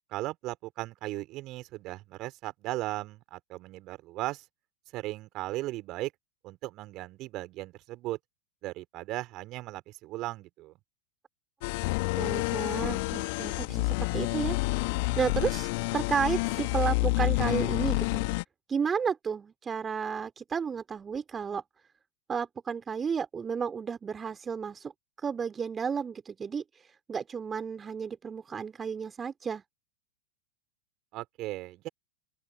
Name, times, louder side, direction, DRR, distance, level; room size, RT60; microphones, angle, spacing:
voice 1, 0.1-4.4 4.9-6.1 6.4-8.2 8.6-10.7 31.1-31.9, right 18 dB, 40° right, 4.1 m, -37 dB
sound 1, 11.6-18.4, left 28 dB, 45° left, 2.2 m, -29 dB
voice 2, 12.2-14.6 15.2-18.2 18.7-21.6 22.3-24.9 25.2-26.6 27.1-29.6, right 6 dB, 20° right, 3.1 m, -32 dB
open air
figure-of-eight pair, 90°, 0 cm